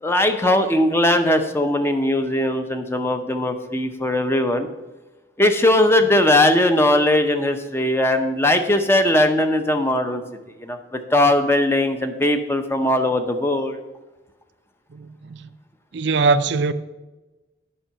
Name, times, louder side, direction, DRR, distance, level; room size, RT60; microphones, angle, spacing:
voice 1, 0.0-4.7 5.4-10.2 10.6-10.8 11.1-13.8, left 1 dB, 10° left, 0.7 m, -19 dB
voice 2, 14.9-15.4 15.9-16.7, right 4 dB, 60° right, 0.5 m, -21 dB
8.7 x 5.5 x 6.8 m
head